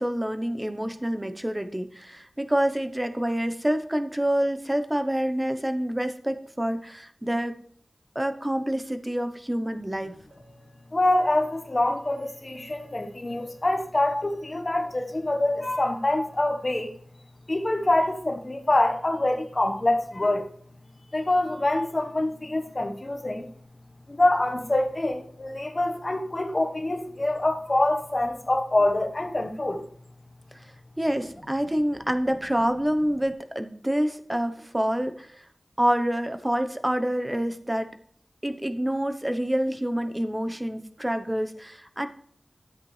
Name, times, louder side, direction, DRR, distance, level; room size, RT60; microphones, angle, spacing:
voice 1, 0.0-7.6 8.1-10.1 30.5-30.7 31.0-35.4 35.8-37.9 38.4-42.1, equal, 15° right, 0.9 m, -27 dB
sound 1, 10.3-16.9, right 1 dB, 70° right, 5.2 m, -58 dB
voice 2, 10.9-16.9 17.5-20.4 21.1-23.5 24.1-29.8, left 1 dB, 40° left, 1.3 m, -25 dB
13.0 x 8.3 x 3.3 m
wide cardioid pair, 70°, 0 cm